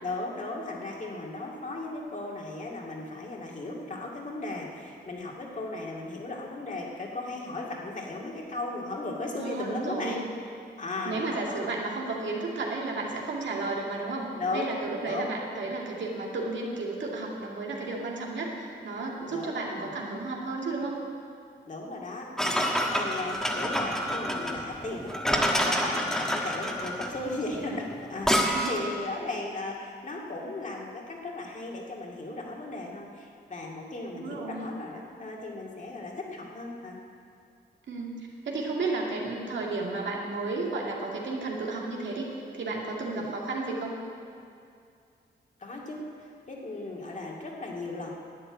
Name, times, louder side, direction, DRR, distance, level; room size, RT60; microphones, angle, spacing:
voice 1, 0.0-10.2 10.8-11.7 14.4-14.7 15.0-15.3 15.6-15.7 19.3-19.9 21.7-22.6 23.0-37.0 43.0-43.3 45.6-48.1, left 2 dB, 45° left, -2 dB, 2.2 m, -36 dB
voice 2, 9.4-10.2 11.1-21.0 28.4-28.8 34.1-34.7 37.9-42.3 42.5-44.0, right 3 dB, 85° right, -2 dB, 2.3 m, -33 dB
sound 1, 22.4-28.9, equal, 5° left, 1.3 m, -28 dB
11.0 x 8.1 x 9.7 m, 2.4 s
wide cardioid pair, 125°, 18 cm